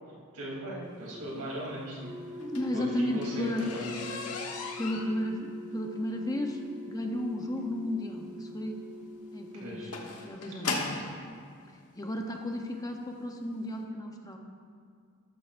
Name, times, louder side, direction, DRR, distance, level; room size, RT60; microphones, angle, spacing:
voice 1, 0.3-2.4 2.7-4.3 9.6-9.9, equal, 85° right, -4 dB, 3.1 m, -38 dB
sound 1, 2.0-10.3, left 2 dB, 30° right, 1.9 m, -45 dB
sound 2, 2.3-11.2 12.1-12.2 12.7-12.9 13.2-13.3 13.6-13.7, left 3 dB, 85° left, 1.3 m, -38 dB
voice 2, 2.3-3.7 4.8-8.8 9.3-9.9 10.2-10.8 11.7-14.4, left 1 dB, 15° left, 2 dB, 0.7 m, -34 dB
13.0 x 12.5 x 2.6 m, 2.2 s
head